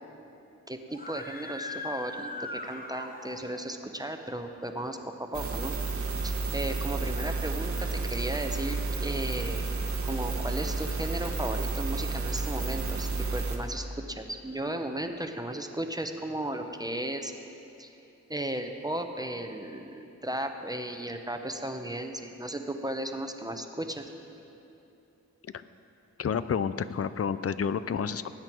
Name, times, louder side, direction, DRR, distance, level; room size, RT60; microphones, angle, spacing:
voice 1, 0.7-5.7 6.2-9.7 10.0-17.3 17.8-17.9 18.3-24.1, right 1 dB, 15° right, 5 dB, 0.8 m, -35 dB
Screaming, 0.9-3.7, left 2 dB, 30° left, 1.0 m, -39 dB
sound 1, 5.3-13.6, right 3 dB, 70° right, 1.4 m, -31 dB
voice 2, 26.2-28.3, left 7 dB, 50° left, 14 dB, 0.5 m, -30 dB
19.5 x 9.0 x 4.6 m, 2.8 s
wide cardioid pair, 70°, 29 cm